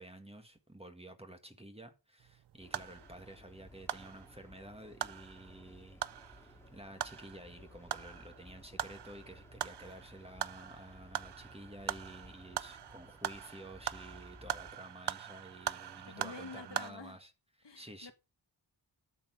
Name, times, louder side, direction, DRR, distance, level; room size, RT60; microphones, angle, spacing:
voice 1, 0.0-17.3 17.6-18.1, right 1 dB, 10° right, 1.7 m, -51 dB
sound 1, 2.2-16.9, right 10 dB, 60° right, 0.5 m, -42 dB
sound 2, 2.6-14.7, left 1 dB, 5° left, 2.0 m, -58 dB
voice 2, 16.0-17.2 17.6-18.1, left 4 dB, 65° left, 1.6 m, -48 dB
12.0 x 7.1 x 4.8 m
wide cardioid pair, 80°, 47 cm